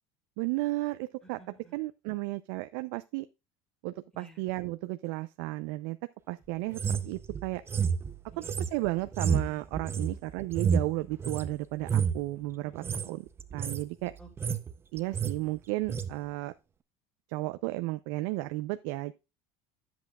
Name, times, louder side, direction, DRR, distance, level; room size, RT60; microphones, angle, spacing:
voice 1, 0.4-1.4 1.7-3.3 3.8-6.0 6.3-7.6 8.4-14.1 14.9-16.5 17.3-19.1, right 19 dB, 75° right, 0.5 m, -34 dB
voice 2, 1.4-1.8 4.1-4.4 8.3-8.5 10.0-10.2 12.8-13.2 14.2-14.6, right 5 dB, 5° left, 2.2 m, -53 dB
sound 1, 6.7-11.5 11.8-12.2 12.7-13.1 13.4-13.8 14.2-14.7 15.0-15.4 15.9-16.1, right 6 dB, 20° right, 0.6 m, -30 dB
10.5 x 7.9 x 2.3 m
cardioid pair, 150°, 13 cm